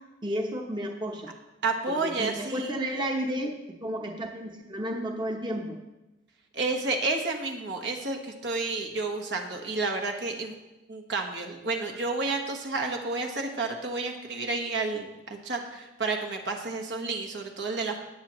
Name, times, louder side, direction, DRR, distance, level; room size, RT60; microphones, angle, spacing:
voice 1, 0.2-1.3 1.9-3.5 3.8-5.8, equal, 25° right, 2 dB, 0.9 m, -32 dB
voice 2, 1.6-2.7 6.5-10.5 10.9-18.0, right 3 dB, 70° right, 2 dB, 1.4 m, -30 dB
18.5 x 7.4 x 3.1 m, 1.0 s
head